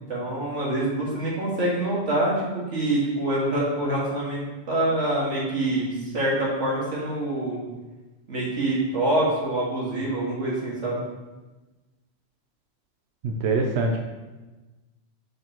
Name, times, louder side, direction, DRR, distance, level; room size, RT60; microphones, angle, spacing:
voice 1, 0.0-4.4 4.7-7.6 8.3-11.0, right 1 dB, 90° right, -5 dB, 2.2 m, -25 dB
voice 2, 13.2-14.0, right 3 dB, 65° right, 2 dB, 0.9 m, -24 dB
6.4 x 6.4 x 3.0 m, 1.2 s
omnidirectional pair, 1.2 m